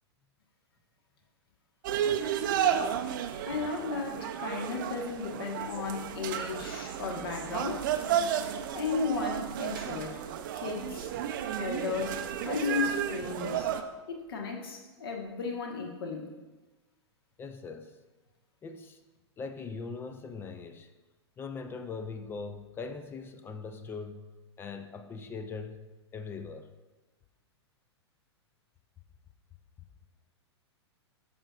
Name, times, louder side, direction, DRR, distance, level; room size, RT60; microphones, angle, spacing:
sound 1, 1.8-13.8, right 9 dB, 45° right, 0.5 m, -32 dB
voice 1, 3.5-7.9 8.7-10.2 10.5-11.1 11.6-13.7 14.1-16.3, left 5 dB, 55° left, 1.4 m, -35 dB
voice 2, 17.4-18.0 18.6-19.0 19.4-20.9 21.4-24.3 24.6-26.7, left 4 dB, 15° left, 0.4 m, -41 dB
11.0 x 6.3 x 2.4 m
figure-of-eight pair, 100°, 15 cm